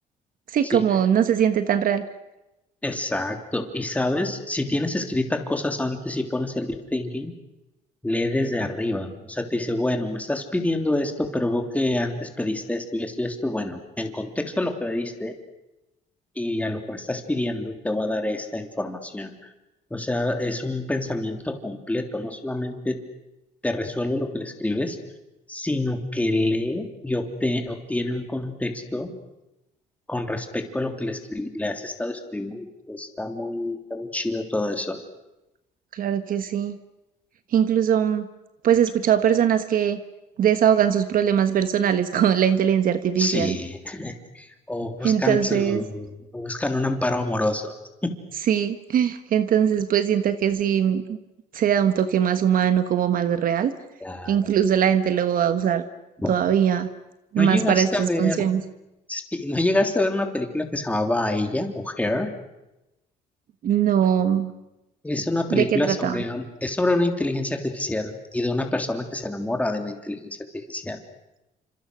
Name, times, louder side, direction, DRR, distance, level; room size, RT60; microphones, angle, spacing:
voice 1, 0.5-2.0 35.9-36.8 37.5-38.3 38.6-40.0 40.4-43.6 45.0-45.8 48.5-51.2 51.5-53.7 54.3-55.8 56.3-56.9 57.3-58.6 63.6-64.5 65.5-66.2, right 9 dB, 55° right, 10 dB, 1.4 m, -21 dB
voice 2, 2.8-7.3 8.0-15.3 16.3-19.3 19.9-23.0 23.6-25.0 25.5-29.1 30.1-35.0 43.2-47.7 48.0-48.2 54.0-54.4 56.2-56.3 57.4-58.4 59.1-62.3 65.0-71.0, left 2 dB, 10° left, 4 dB, 3.2 m, -27 dB
28.5 x 26.5 x 6.4 m, 0.95 s
cardioid pair, 110°, 17 cm